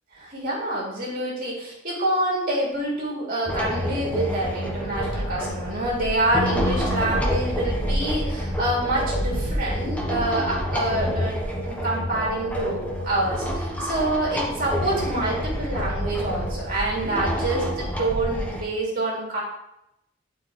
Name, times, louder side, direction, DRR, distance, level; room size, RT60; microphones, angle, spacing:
voice 1, 0.1-11.4 11.6-19.4, right 1 dB, 45° right, -4 dB, 2.9 m, -27 dB
sound 1, 3.5-18.6, equal, 5° left, 1.1 m, -28 dB
11.5 x 4.6 x 3.2 m, 0.84 s
head